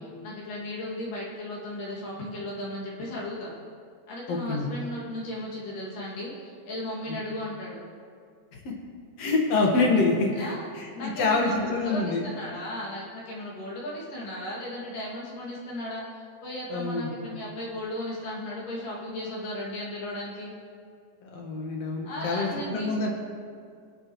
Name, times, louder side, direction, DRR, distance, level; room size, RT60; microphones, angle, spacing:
voice 1, 0.2-3.5 4.1-7.8 10.4-10.7 10.9-20.5 22.0-23.1, left 1 dB, 80° left, -6 dB, 4.0 m, -36 dB
voice 2, 4.3-4.7 7.1-7.2 8.5-8.7 9.2-12.2 16.7-17.1 21.2-23.1, left 3 dB, 55° left, -1 dB, 2.6 m, -26 dB
21.0 x 10.0 x 3.1 m, 2.2 s
omnidirectional pair, 3.7 m